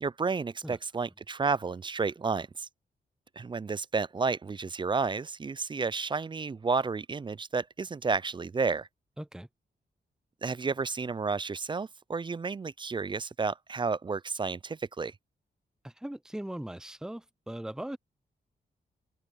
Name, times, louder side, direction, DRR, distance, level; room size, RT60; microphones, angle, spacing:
voice 1, 0.0-2.7 3.4-8.9 10.4-15.1, right 4 dB, 25° right, 0.4 m, -31 dB
voice 2, 9.2-9.5 15.8-18.0, right 1 dB, 5° right, 0.8 m, -39 dB
open air
cardioid pair, 75°, 18 cm